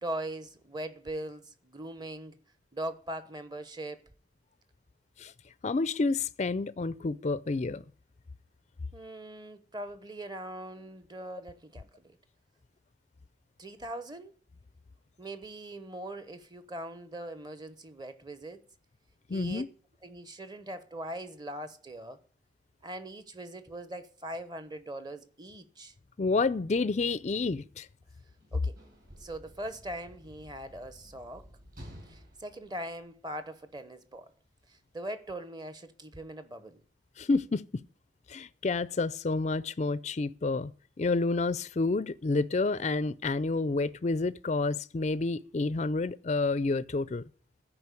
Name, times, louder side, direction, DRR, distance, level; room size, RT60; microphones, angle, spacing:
voice 1, 0.0-2.4 2.7-4.0 8.9-12.2 13.6-14.3 15.2-18.6 19.3-19.7 20.0-22.2 22.8-25.9 28.5-28.8 29.2-31.5 32.1-34.3 34.7-36.8, right 1 dB, 20° right, 0.9 m, -41 dB
voice 2, 5.6-7.8 19.3-19.7 26.2-27.9 37.2-37.8 38.3-40.7 41.0-47.2, left 3 dB, 35° left, 0.4 m, -29 dB
Sliding door / Slam, 28.3-33.7 34.6-34.7, equal, 50° right, 5.6 m, -52 dB
13.0 x 5.0 x 8.3 m
head